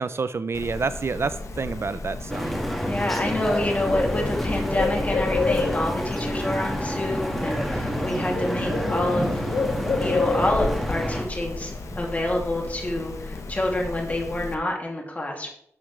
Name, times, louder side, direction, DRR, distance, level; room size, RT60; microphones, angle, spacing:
voice 1, 0.0-2.6, right 4 dB, 55° right, 13 dB, 0.4 m, -28 dB
Bird, 0.5-14.5, left 3 dB, 75° left, 1.0 m, -31 dB
sound 1, 2.3-11.2, equal, ahead, 1.6 m, -29 dB
voice 2, 2.9-9.4 10.0-11.7 12.0-15.5, left 1 dB, 30° left, 0 dB, 2.5 m, -27 dB
sound 2, 6.7-12.0, right 2 dB, 30° right, 1.1 m, -38 dB
11.5 x 7.3 x 3.2 m, 0.71 s
wide cardioid pair, 95°, 5 cm